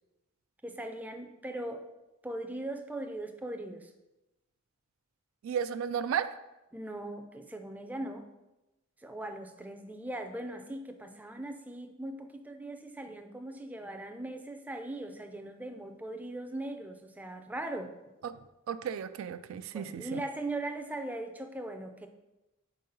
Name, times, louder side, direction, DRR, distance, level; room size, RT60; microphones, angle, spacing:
voice 1, 0.6-1.9 2.2-3.9 6.7-8.3 9.0-17.9 19.7-22.1, right 1 dB, 10° right, 6 dB, 0.4 m, -39 dB
voice 2, 5.4-6.3 18.2-18.3 18.7-20.2, right 8 dB, 75° right, 12 dB, 0.3 m, -33 dB
4.6 x 4.0 x 5.4 m, 0.99 s
head